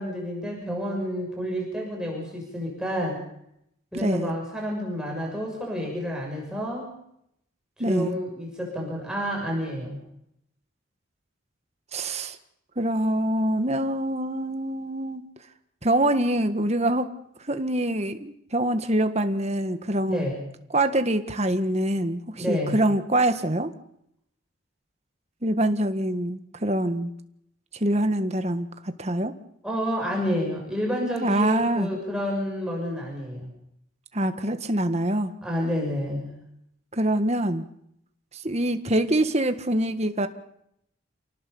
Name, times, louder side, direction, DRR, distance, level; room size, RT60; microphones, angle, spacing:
voice 1, 0.0-3.2 3.9-6.9 7.8-10.0 20.1-20.4 22.4-22.7 29.6-33.5 35.4-36.3, equal, 5° right, -1 dB, 6.6 m, -29 dB
voice 2, 3.9-4.3 7.8-8.1 11.9-12.4 12.7-15.2 15.8-17.1 17.5-20.3 20.7-23.7 25.4-27.1 27.7-29.3 31.2-31.9 34.1-35.3 36.9-37.6 38.3-40.3, right 1 dB, 30° right, 9 dB, 1.6 m, -25 dB
29.0 x 18.0 x 7.1 m, 0.76 s
head